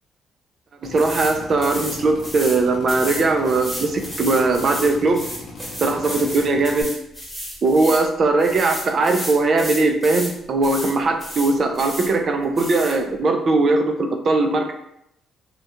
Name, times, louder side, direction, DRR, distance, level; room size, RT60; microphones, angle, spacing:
Drill, 0.8-6.8, left 2 dB, 65° left, 0.5 m, -39 dB
voice 1, 0.8-5.2 5.8-6.9 7.6-14.7, right 3 dB, 50° right, 5 dB, 0.3 m, -19 dB
sound 1, 1.0-1.3 1.6-2.6 2.9-8.1 8.4-10.3 10.6-10.9 11.2-12.1 12.6-13.0, equal, ahead, 1.1 m, -32 dB
2.3 x 2.1 x 2.8 m, 0.79 s
cardioid pair, 90°, 0 cm